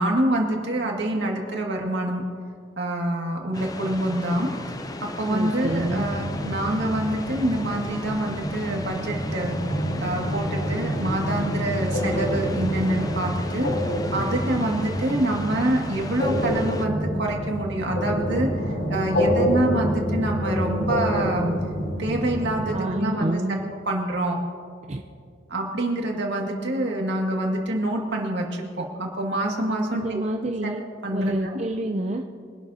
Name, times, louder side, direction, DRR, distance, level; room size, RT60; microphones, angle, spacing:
voice 1, 0.0-2.2 2.8-4.5 5.0-9.6 10.0-13.7 14.1-18.5 18.9-21.5 22.0-23.4 23.7-24.4 25.5-30.2 30.6-30.7 31.0-31.6, right 1 dB, 70° right, 0 dB, 2.1 m, -26 dB
sound 1, 3.5-16.9, left 2 dB, 20° left, 0.5 m, -36 dB
voice 2, 5.3-6.1 22.7-23.6 24.9-25.0 29.9-30.8 31.1-32.2, right 1 dB, 35° right, 3 dB, 0.5 m, -27 dB
sound 2, 5.6-22.8, equal, 90° left, 3.3 m, -28 dB
24.0 x 12.0 x 2.8 m, 2.3 s
head